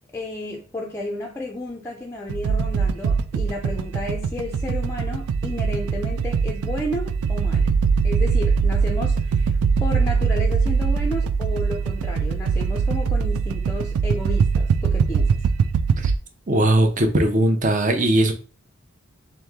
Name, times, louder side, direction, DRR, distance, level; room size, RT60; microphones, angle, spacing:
voice 1, 0.1-7.7 8.0-15.5, left 1 dB, 10° left, 0.4 m, -32 dB
sound 1, 2.3-16.2, right 5 dB, 85° right, 0.3 m, -22 dB
voice 2, 16.5-18.3, right 1 dB, 35° right, 0.6 m, -19 dB
3.5 x 3.0 x 3.6 m
head